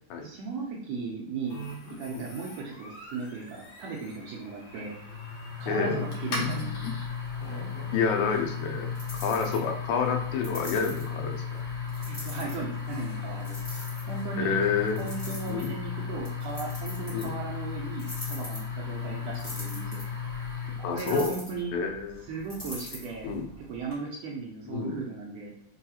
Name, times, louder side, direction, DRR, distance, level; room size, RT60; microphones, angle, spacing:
voice 1, 0.2-1.6 2.0-5.0 5.6-6.9 12.1-13.6 14.1-14.6 15.0-20.0 20.9-21.7 22.3-23.3 23.7-25.5, right 4 dB, 80° right, -2 dB, 1.6 m, -37 dB
sound 1, 1.5-21.1, left 6 dB, 65° left, 2.0 m, -35 dB
voice 2, 5.7-6.1 7.9-11.4 14.4-15.1 15.5-15.7 17.1-17.3 20.8-21.3 21.7-22.3 23.2-23.5 24.7-25.0, left 5 dB, 90° left, 3 dB, 2.1 m, -28 dB
sound 2, 6.4-23.9, left 1 dB, 40° left, 0.6 m, -45 dB
4.7 x 2.2 x 2.8 m, 0.74 s
omnidirectional pair, 3.3 m